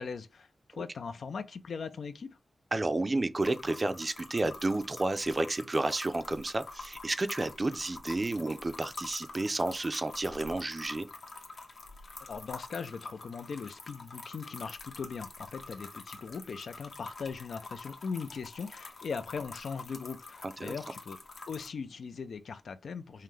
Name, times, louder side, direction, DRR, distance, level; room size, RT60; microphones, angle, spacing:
voice 1, 0.0-2.4 12.3-21.2 21.5-23.2, left 5 dB, 85° left, 0.5 m, -39 dB
voice 2, 2.7-11.1 20.4-20.7, right 2 dB, 30° right, 0.4 m, -31 dB
sound 1, 3.4-21.7, left 3 dB, 65° left, 0.9 m, -47 dB
5.6 x 2.1 x 3.2 m
wide cardioid pair, 115°, 0 cm